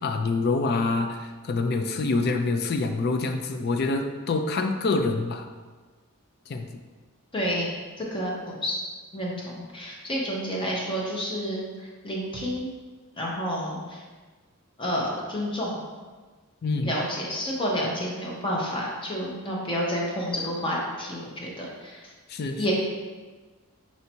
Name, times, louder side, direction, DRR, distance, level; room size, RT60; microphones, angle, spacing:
voice 1, 0.0-5.5 6.5-6.7 16.6-16.9 22.3-22.6, left 3 dB, 45° left, 6 dB, 0.4 m, -26 dB
voice 2, 7.3-7.7 8.0-8.8 9.1-12.7 13.2-14.0 14.8-15.7 16.8-22.0 22.6-22.7, equal, 25° left, -3 dB, 0.9 m, -30 dB
4.3 x 2.7 x 4.4 m, 1.4 s
head